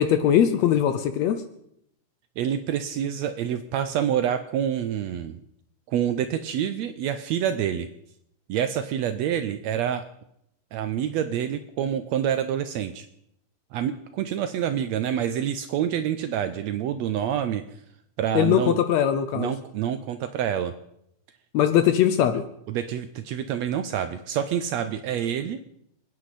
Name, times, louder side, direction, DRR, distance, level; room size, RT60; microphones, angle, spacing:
voice 1, 0.0-1.4 18.3-19.5 21.5-22.4, left 10 dB, 75° left, 10 dB, 1.7 m, -21 dB
voice 2, 2.4-5.4 5.9-7.9 8.5-10.0 10.7-13.0 13.7-17.6 18.2-18.8 19.3-20.7 22.7-25.6, right 9 dB, 75° right, 10 dB, 1.6 m, -27 dB
27.5 x 9.7 x 4.2 m, 0.76 s
omnidirectional pair, 3.6 m